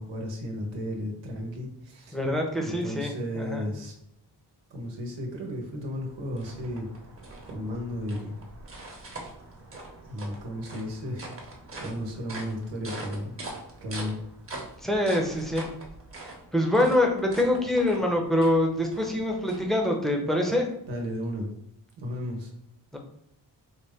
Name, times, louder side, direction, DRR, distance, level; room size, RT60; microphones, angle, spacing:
voice 1, 0.0-2.2 2.6-3.9 4.7-6.9 7.5-8.3 10.0-11.3 11.8-13.3 13.8-14.2 20.9-21.5 22.0-22.5, equal, 85° right, 0 dB, 1.0 m, -34 dB
voice 2, 2.1-3.7 14.8-15.6 16.2-20.7 22.9-23.0, left 1 dB, ahead, 1 dB, 0.8 m, -25 dB
sound 1, 5.7-20.1, right 2 dB, 30° right, 1.1 m, -43 dB
4.2 x 2.1 x 3.5 m, 0.75 s
cardioid pair, 70°, 43 cm